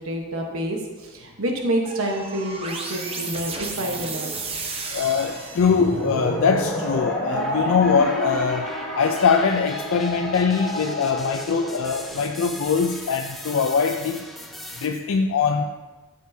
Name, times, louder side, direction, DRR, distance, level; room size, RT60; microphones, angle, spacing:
voice 1, 0.0-4.3, right 1 dB, 70° right, 1 dB, 1.2 m, -28 dB
sound 1, 1.8-6.1, right 3 dB, 25° right, 0.9 m, -33 dB
sound 2, 2.8-3.7 4.1-14.9, left 1 dB, ahead, 0.7 m, -40 dB
voice 2, 4.9-14.2 14.8-15.7, left 5 dB, 65° left, 4 dB, 0.4 m, -22 dB
sound 3, 5.6-12.1, left 1 dB, 20° left, 2.9 m, -29 dB
12.5 x 6.4 x 2.7 m, 1.2 s
head